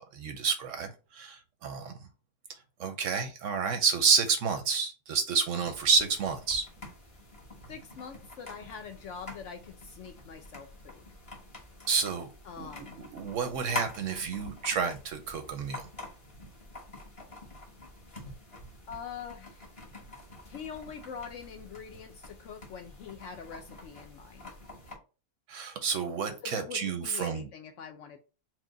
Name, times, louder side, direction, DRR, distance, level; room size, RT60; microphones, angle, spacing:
voice 1, 0.1-1.9 2.8-6.6 11.9-12.3 12.6-15.9 25.5-27.4, right 5 dB, 65° right, 0.8 m, -29 dB
sound 1, 5.6-25.0, left 2 dB, 25° left, 0.9 m, -46 dB
voice 2, 7.7-11.1 12.4-13.0 18.9-19.7 20.5-24.6 26.4-28.2, left 7 dB, 65° left, 0.8 m, -44 dB
4.5 x 2.1 x 3.8 m
omnidirectional pair, 1.6 m